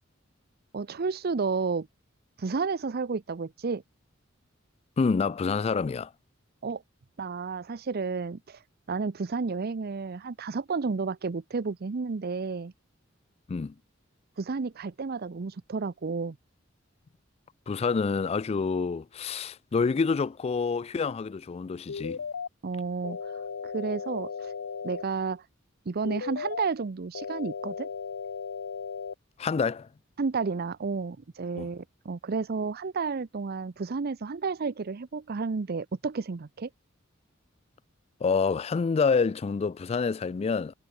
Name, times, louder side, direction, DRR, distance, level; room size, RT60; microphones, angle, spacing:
voice 1, 0.7-1.9 2.4-3.8 6.6-6.8 7.2-8.6 8.9-12.7 14.4-16.4 22.6-24.5 24.8-25.4 25.9-27.9 30.2-36.7, right 4 dB, 50° right, 0.6 m, -31 dB
voice 2, 5.0-6.1 13.5-13.7 17.7-22.2 29.4-29.9 31.6-31.7 38.2-40.7, left 5 dB, 30° left, 0.3 m, -27 dB
sound 1, 21.9-22.5 23.0-25.0 26.0-26.7 27.1-29.1, left 6 dB, 80° left, 0.6 m, -36 dB
head